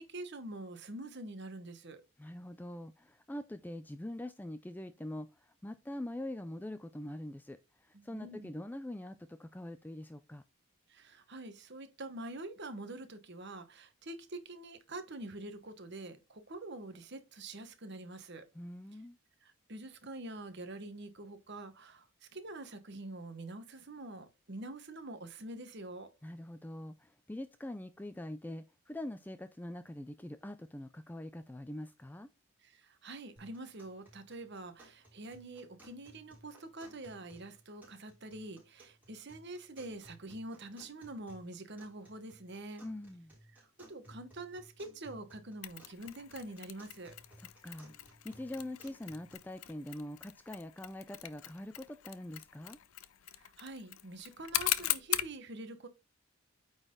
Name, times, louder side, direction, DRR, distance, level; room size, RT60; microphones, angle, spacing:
voice 1, 0.0-2.0 7.9-8.5 10.9-18.5 19.4-26.1 32.6-42.8 43.5-47.2 53.3-55.9, right 2 dB, 50° right, 1.1 m, -46 dB
voice 2, 2.2-10.4 18.5-19.2 26.2-32.3 42.8-43.3 47.4-47.9 48.2-52.8, left 1 dB, 10° left, 0.3 m, -44 dB
sound 1, 33.4-49.4, right 1 dB, 5° right, 3.4 m, -60 dB
Mechanisms, 45.6-55.4, left 14 dB, 70° left, 0.5 m, -40 dB
9.0 x 4.0 x 3.8 m
head